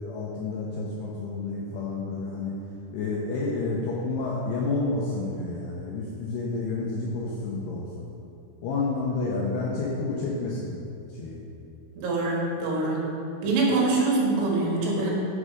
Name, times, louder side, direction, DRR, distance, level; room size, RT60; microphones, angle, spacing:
voice 1, 0.0-2.6 2.9-8.1 8.6-10.8 11.1-11.4, left 3 dB, 75° left, -4 dB, 2.5 m, -30 dB
voice 2, 12.0-13.1 13.4-15.1, right 3 dB, 75° right, -3 dB, 4.0 m, -24 dB
9.8 x 6.4 x 5.0 m, 2.8 s
omnidirectional pair, 5.7 m